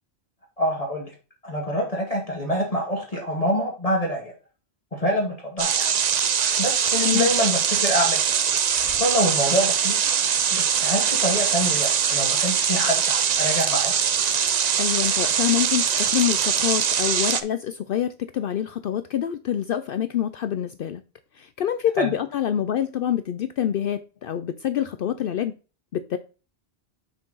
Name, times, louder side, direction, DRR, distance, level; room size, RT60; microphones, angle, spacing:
voice 1, 0.6-1.1 1.4-4.3 4.9-6.0 6.6-8.3 8.9-10.0 10.5-13.9 22.0-22.1, equal, 35° left, 1.9 m, -26 dB
sound 1, 5.6-17.4, right 7 dB, 50° right, 0.6 m, -22 dB
voice 2, 7.0-7.3 14.8-21.0 21.4-25.5 25.9-26.2, left 10 dB, 65° left, 0.7 m, -26 dB
6.2 x 4.4 x 5.4 m
omnidirectional pair, 1.1 m